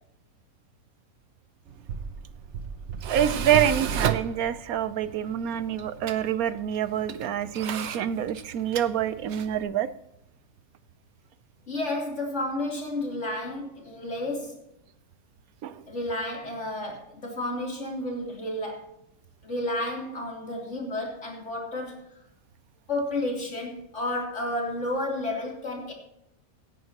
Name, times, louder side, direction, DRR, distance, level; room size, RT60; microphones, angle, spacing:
Tools, 1.7-9.6, right 8 dB, 60° right, 1.0 m, -34 dB
voice 1, 3.1-9.9 15.6-15.7, right 9 dB, 80° right, 1.2 m, -26 dB
voice 2, 11.7-14.6 15.9-18.9 19.4-22.0 22.9-25.9, left 1 dB, 55° left, 3.6 m, -31 dB
17.5 x 10.5 x 3.0 m
omnidirectional pair, 1.5 m